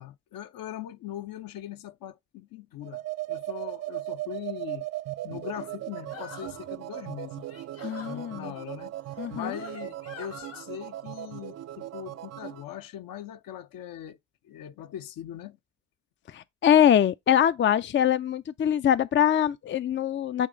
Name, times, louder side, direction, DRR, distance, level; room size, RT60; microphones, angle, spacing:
voice 1, 0.0-3.0 3.3-4.9 5.2-7.5 8.0-8.9 9.3-14.2 14.4-15.6, left 11 dB, 65° left, 0.9 m, -40 dB
sound 1, 2.8-12.6, right 15 dB, 45° right, 0.5 m, -38 dB
sound 2, 6.1-6.6 7.4-8.2 9.1-10.6, left 4 dB, 90° left, 2.9 m, -45 dB
voice 2, 7.8-8.5 9.2-9.5 16.3-20.5, left 10 dB, 30° left, 0.5 m, -23 dB
8.7 x 3.0 x 3.9 m
hypercardioid pair, 40°, 37 cm